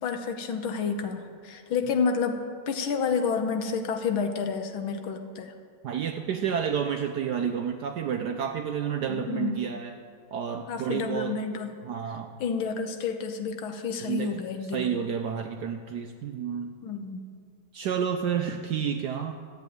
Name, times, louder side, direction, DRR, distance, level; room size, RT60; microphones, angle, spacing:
voice 1, 0.0-2.4 2.7-5.5 9.1-9.7 10.7-11.7 12.4-15.0 16.8-17.2, left 5 dB, 75° left, 6 dB, 1.8 m, -30 dB
voice 2, 5.8-10.0 10.3-11.4 11.8-12.3 14.0-14.3 14.7-16.7 17.7-19.3, right 8 dB, 70° right, 6 dB, 1.0 m, -30 dB
13.0 x 8.1 x 9.3 m, 2.1 s
omnidirectional pair, 2.3 m